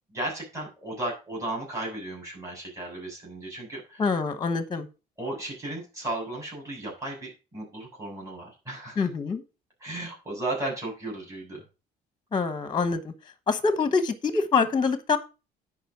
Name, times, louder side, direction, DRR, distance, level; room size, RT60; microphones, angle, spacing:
voice 1, 0.1-4.0 5.2-9.1 9.8-11.6, right 2 dB, 20° right, -3 dB, 6.9 m, -35 dB
voice 2, 4.0-4.9 9.0-9.4 12.3-13.1 13.5-15.2, left 4 dB, 25° left, 12 dB, 1.1 m, -25 dB
10.0 x 5.2 x 6.0 m, 0.30 s
cardioid pair, 110°, 17 cm